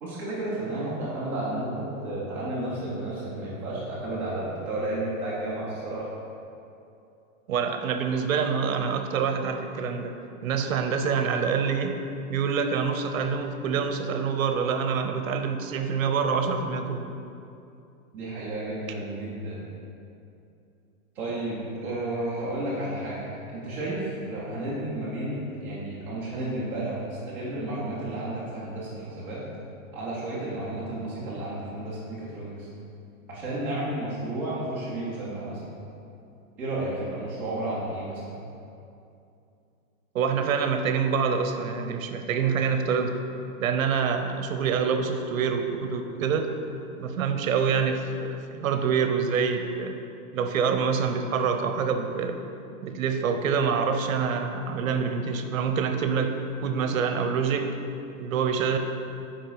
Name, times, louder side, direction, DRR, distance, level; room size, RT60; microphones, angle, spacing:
voice 1, 0.0-6.1 18.1-19.7 21.1-29.4 29.9-32.7 33.3-35.7 36.6-38.2, right 1 dB, 5° right, -12 dB, 0.5 m, -32 dB
voice 2, 7.5-10.1 10.4-12.0 12.3-17.1 40.1-43.1 43.6-46.5 47.0-50.0 50.3-52.5 52.8-57.7 58.2-58.8, right 6 dB, 70° right, 6 dB, 0.8 m, -26 dB
6.3 x 5.0 x 5.7 m, 2.7 s
supercardioid pair, 180°, 42 cm